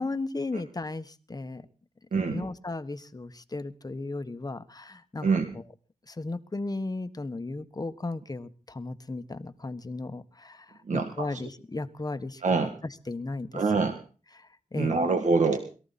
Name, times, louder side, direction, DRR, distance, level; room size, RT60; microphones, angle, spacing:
voice 1, 0.0-1.6 2.3-5.3 5.5-5.6 6.1-12.4 13.1-13.6 14.3-15.0, left 2 dB, 30° left, 10 dB, 1.3 m, -35 dB
voice 2, 2.1-2.4 5.2-5.5 10.9-11.4 12.4-12.7 13.5-14.0 14.8-15.6, right 4 dB, 65° right, 6 dB, 1.7 m, -25 dB
22.0 x 14.0 x 4.2 m, 0.37 s
cardioid pair, 75°, 13 cm